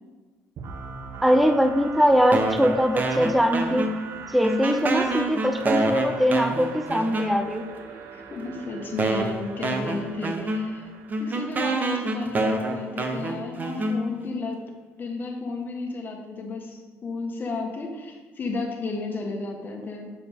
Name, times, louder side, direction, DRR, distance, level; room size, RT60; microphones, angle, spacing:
sound 1, 0.6-12.3, right 5 dB, 65° right, 1.0 m, -41 dB
voice 1, 1.2-3.9 4.3-7.7, equal, ahead, 7 dB, 0.4 m, -21 dB
sound 2, 2.3-4.2 4.4-7.7 8.4-8.5 9.0-14.4, right 2 dB, 35° right, 0.9 m, -27 dB
voice 2, 8.1-10.9 11.2-20.1, left 3 dB, 40° left, 2 dB, 1.5 m, -33 dB
7.0 x 6.9 x 3.6 m, 1.3 s
cardioid pair, 100°, 5 cm